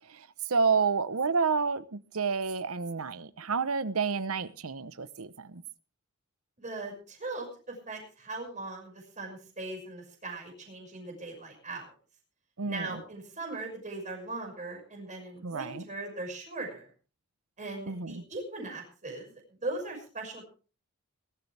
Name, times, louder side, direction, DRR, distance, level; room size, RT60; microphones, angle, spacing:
voice 1, 0.1-5.6 12.6-13.0 15.4-15.8 17.9-18.2, right 5 dB, 80° right, 0.9 m, -30 dB
voice 2, 6.6-11.9 12.6-16.9 17.6-20.5, right 2 dB, 35° right, 6.0 m, -39 dB
21.5 x 12.5 x 3.4 m
head